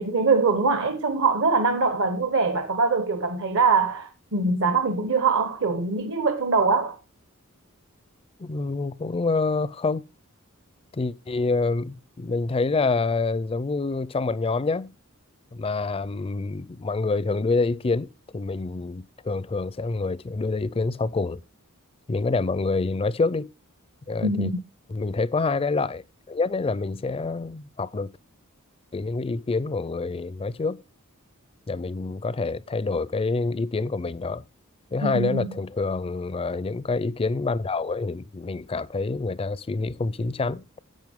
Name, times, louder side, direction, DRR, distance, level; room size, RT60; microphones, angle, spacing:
voice 1, 0.0-7.0 24.2-24.5 35.0-35.5, right 4 dB, 65° right, 1.1 m, -23 dB
voice 2, 8.4-10.0 10.9-14.9 15.5-21.4 22.1-23.5 24.1-24.5 24.9-28.1 28.9-30.8 31.7-34.4 34.9-40.7, left 3 dB, 25° left, 0.4 m, -27 dB
10.5 x 7.9 x 3.6 m
head